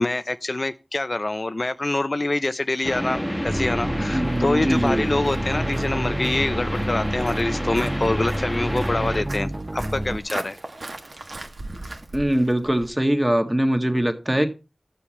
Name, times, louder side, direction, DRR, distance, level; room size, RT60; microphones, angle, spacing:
voice 1, 0.0-10.6, left 2 dB, 55° left, 0.5 m, -25 dB
sound 1, 2.8-9.2, equal, 10° left, 1.6 m, -29 dB
sound 2, 3.5-10.2, right 1 dB, 30° right, 1.0 m, -29 dB
voice 2, 4.1-5.1 12.1-14.5, right 1 dB, 15° right, 1.7 m, -22 dB
Walk footsteps, 4.2-12.9, right 2 dB, 65° right, 1.5 m, -40 dB
12.5 x 7.1 x 4.2 m
wide cardioid pair, 45°, 0 cm